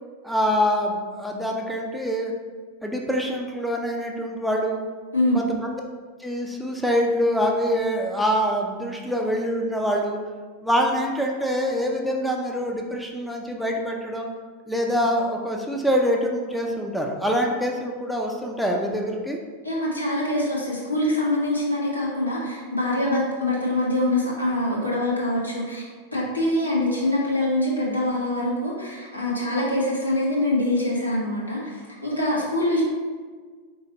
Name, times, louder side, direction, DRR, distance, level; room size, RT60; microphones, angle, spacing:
voice 1, 0.2-2.3 2.8-4.8 5.3-5.7 6.2-10.2 10.6-14.3 14.7-19.4, equal, ahead, 0 dB, 0.5 m, -25 dB
voice 2, 5.1-5.4 19.6-32.8, left 1 dB, 85° left, -6 dB, 1.1 m, -24 dB
4.1 x 3.0 x 3.9 m, 1.5 s
figure-of-eight pair, 90°, 0 cm